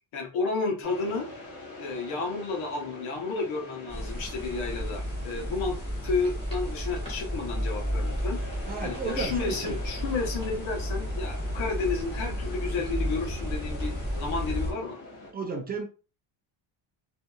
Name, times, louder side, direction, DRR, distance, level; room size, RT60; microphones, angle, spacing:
voice 1, 0.1-1.3 1.8-8.4 8.8-15.0, left 4 dB, 80° left, 1.1 m, -32 dB
sound 1, 0.8-15.3, left 2 dB, 40° left, 1.0 m, -44 dB
sound 2, 3.9-14.7, equal, 10° left, 1.4 m, -32 dB
voice 2, 8.7-9.8 15.3-15.8, right 4 dB, 20° right, 0.3 m, -33 dB
2.7 x 2.6 x 2.3 m
cardioid pair, 170°, 46 cm